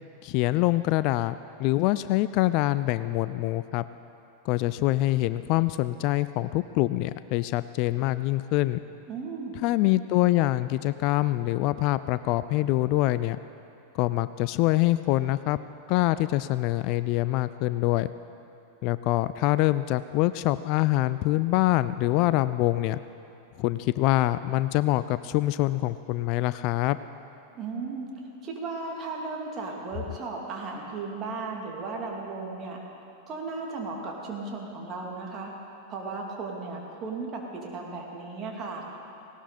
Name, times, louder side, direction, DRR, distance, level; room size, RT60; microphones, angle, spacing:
voice 1, 0.2-3.8 4.4-8.8 9.6-13.4 13.9-15.6 15.9-18.1 18.8-23.0 23.6-27.0, left 17 dB, 45° left, 14 dB, 0.3 m, -25 dB
voice 2, 9.1-9.6 27.5-32.8 33.3-35.5 35.9-38.8, right 3 dB, 30° right, -1 dB, 2.8 m, -35 dB
18.5 x 17.5 x 4.2 m, 2.7 s
figure-of-eight pair, 90°, 0 cm